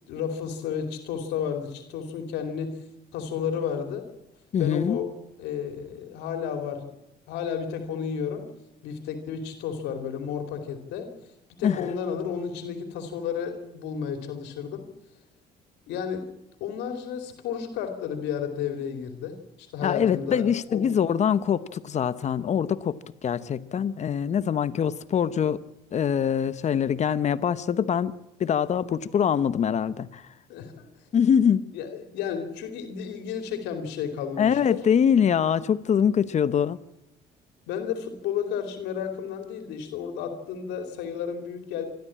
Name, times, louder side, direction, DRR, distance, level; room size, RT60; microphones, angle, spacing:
voice 1, 0.1-2.8 3.1-4.1 4.6-5.1 5.4-6.9 7.3-8.5 8.8-11.1 11.5-14.8 15.9-20.9 30.5-30.9 31.7-34.8 37.7-41.8, left 7 dB, 90° left, 2.8 m, -32 dB
voice 2, 4.5-5.0 11.6-11.9 19.8-25.6 25.9-28.1 28.4-30.2 31.1-31.7 34.4-36.8, left 8 dB, 45° left, 0.9 m, -24 dB
26.0 x 13.0 x 8.7 m
cardioid pair, 110°, 17 cm